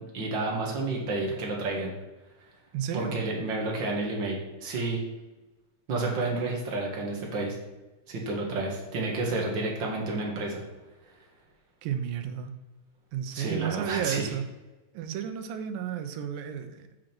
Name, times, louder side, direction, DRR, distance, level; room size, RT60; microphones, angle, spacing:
voice 1, 0.1-1.9 2.9-5.0 5.9-7.6 8.1-10.6 13.3-14.3, right 2 dB, 45° right, -1 dB, 1.8 m, -30 dB
voice 2, 2.7-3.2 11.8-12.5 13.1-14.4 14.9-17.0, right 9 dB, 90° right, 9 dB, 2.4 m, -32 dB
7.2 x 5.1 x 6.0 m, 1.1 s
omnidirectional pair, 3.9 m